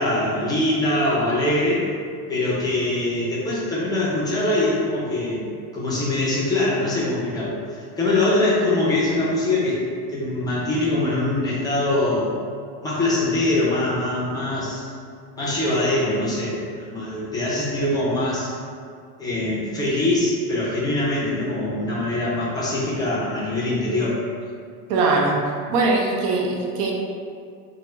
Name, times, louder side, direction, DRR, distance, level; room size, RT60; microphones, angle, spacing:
voice 1, 0.0-1.9 2.3-5.5 5.7-9.8 10.1-12.3 12.8-14.9 15.4-16.6 16.9-18.6 19.2-24.2 25.7-25.8, left 2 dB, 10° left, -8 dB, 0.4 m, -23 dB
voice 2, 24.9-25.4 25.7-26.9, right 3 dB, 75° right, -1 dB, 0.8 m, -21 dB
4.2 x 2.1 x 3.4 m, 2.3 s
cardioid pair, 160°, 45 cm